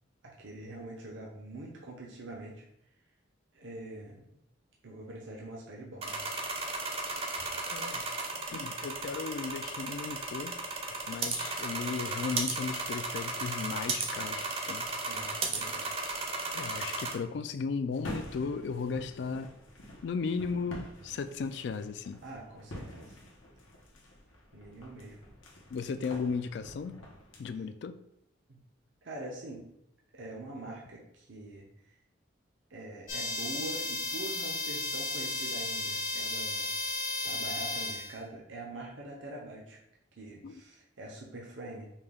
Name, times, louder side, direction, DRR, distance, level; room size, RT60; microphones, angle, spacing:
voice 1, 0.4-2.6 3.5-4.3 4.8-6.2 15.0-15.9 22.2-23.2 24.5-25.2 28.5-28.6 29.0-29.6 30.1-31.7 32.7-36.9 37.2-39.8 40.2-41.9, right 2 dB, 75° right, -2 dB, 0.8 m, -44 dB
sound 1, 6.0-17.1, right 3 dB, 30° right, 0.6 m, -35 dB
voice 2, 7.7-8.0 8.5-10.6 11.1-14.9 16.5-19.5 20.0-22.2 25.7-27.0 27.4-28.0 40.4-40.6, left 5 dB, 60° left, 10 dB, 0.3 m, -35 dB
sound 2, 17.9-27.5, left 1 dB, 90° left, 1.0 m, -47 dB
sound 3, 33.1-38.2, left 3 dB, 45° left, 0.8 m, -34 dB
5.5 x 2.3 x 3.4 m, 0.79 s
head